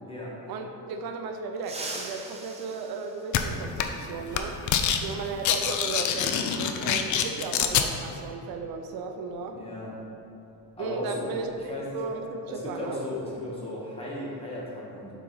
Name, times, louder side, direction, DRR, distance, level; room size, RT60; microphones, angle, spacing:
voice 1, 0.5-4.5 5.0-9.6 10.8-13.0, right 4 dB, 70° right, 5 dB, 0.6 m, -35 dB
sound 1, 1.6-4.0 5.6-5.7 7.0-7.1 8.7-8.8 9.2-9.4 9.9-12.1 12.3-12.6 13.0-13.5, right 2 dB, 15° right, 0.6 m, -43 dB
sound 2, 3.3-3.4 3.8-4.1 4.3-5.0 5.3-7.9, left 8 dB, 55° left, 0.5 m, -25 dB
voice 2, 9.5-9.9 10.7-11.3 11.7-11.8 12.5-15.1, left 1 dB, 15° left, -6 dB, 1.4 m, -35 dB
7.1 x 4.0 x 3.9 m, 2.8 s
cardioid pair, 145°, 37 cm